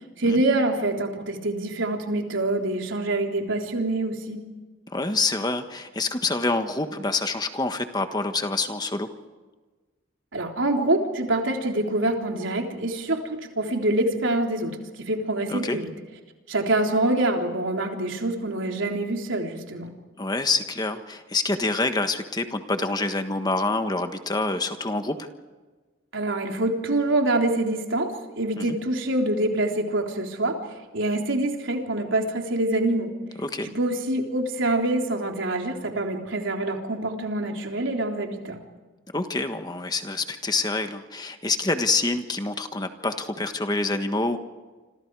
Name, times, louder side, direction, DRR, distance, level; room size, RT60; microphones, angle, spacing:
voice 1, 0.2-4.4 10.3-15.9 16.5-19.9 26.1-28.1 28.4-30.6 30.9-33.1 33.7-38.6, right 2 dB, 75° right, 2 dB, 3.6 m, -25 dB
voice 2, 4.9-9.1 15.5-15.8 20.2-25.3 28.6-28.8 33.4-33.7 39.1-44.4, left 3 dB, 20° left, 7 dB, 1.4 m, -27 dB
28.0 x 26.5 x 4.8 m, 1.3 s
head